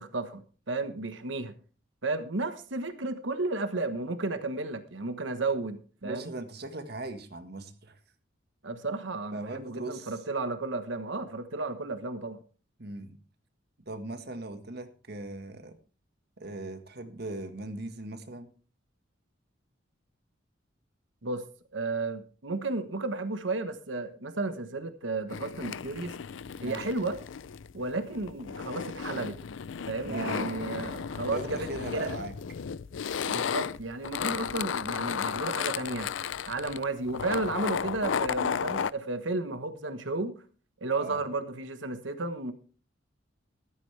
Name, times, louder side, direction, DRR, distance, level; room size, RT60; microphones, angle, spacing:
voice 1, 0.0-1.5 2.0-6.3 8.6-12.4 21.2-21.5 21.7-26.1 26.6-27.2 27.7-29.4 29.9-32.2 33.3-36.1 36.5-40.4 40.8-42.5, right 3 dB, 75° right, 9 dB, 1.3 m, -33 dB
voice 2, 6.0-8.0 9.3-10.1 12.8-13.2 13.9-15.7 16.4-18.5 26.6-26.9 30.1-30.7 31.3-32.3 41.0-41.2, right 2 dB, 55° right, 8 dB, 1.6 m, -39 dB
sound 1, 25.3-38.9, left 7 dB, 75° left, 0.5 m, -34 dB
14.0 x 13.0 x 3.4 m, 0.38 s
head